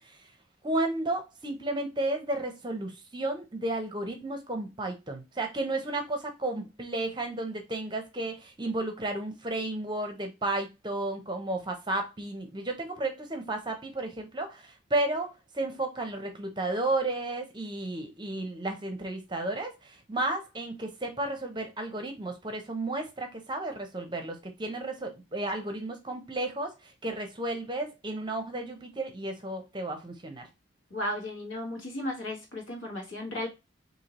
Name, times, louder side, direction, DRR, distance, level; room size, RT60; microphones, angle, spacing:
voice 1, 0.6-30.5, right 2 dB, 20° right, 0.7 m, -33 dB
voice 2, 30.9-33.5, left 1 dB, 70° left, 1.5 m, -35 dB
4.4 x 2.8 x 3.0 m
head